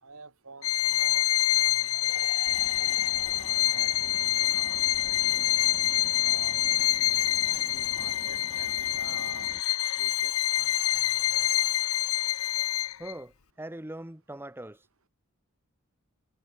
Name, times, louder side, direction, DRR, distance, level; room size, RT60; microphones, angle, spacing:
voice 1, 0.0-2.7 3.3-5.6 6.2-6.7 7.5-8.7 9.0-9.5 10.0-11.8, right 3 dB, 85° right, 4.9 m, -49 dB
Bowed string instrument, 0.6-13.1, left 14 dB, 75° left, 0.7 m, -26 dB
sound 1, 1.9-5.4, left 5 dB, 35° left, 4.1 m, -49 dB
sound 2, 2.5-9.6, right 2 dB, 30° right, 4.6 m, -47 dB
voice 2, 13.0-14.9, right 1 dB, 10° right, 1.6 m, -41 dB
head